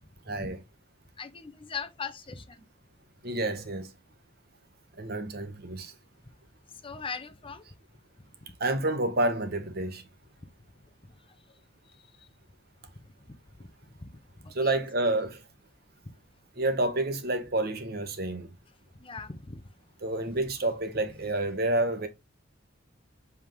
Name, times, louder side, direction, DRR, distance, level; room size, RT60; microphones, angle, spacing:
voice 1, 0.3-0.6 3.2-3.9 5.0-5.9 8.6-10.0 14.5-15.4 16.6-18.5 20.0-22.1, right 2 dB, 55° right, 1.2 m, -29 dB
voice 2, 1.2-2.6 6.8-7.6 11.3-11.4 11.9-12.3 13.6-13.7 14.0-14.1 14.4-14.7 18.9-19.6, left 5 dB, 30° left, 0.7 m, -40 dB
7.7 x 3.6 x 3.6 m
head